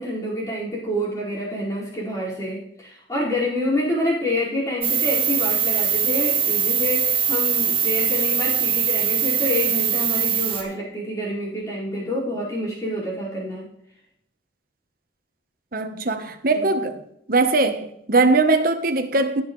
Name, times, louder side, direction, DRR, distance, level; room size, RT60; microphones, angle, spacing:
voice 1, 0.0-13.7 16.5-16.8, left 1 dB, 20° left, 5.1 m, -27 dB
sound 1, 4.8-10.6, right 8 dB, 30° right, 1.7 m, -22 dB
voice 2, 15.7-16.9 17.3-19.4, right 3 dB, 50° right, 1.1 m, -20 dB
18.0 x 7.2 x 3.2 m
head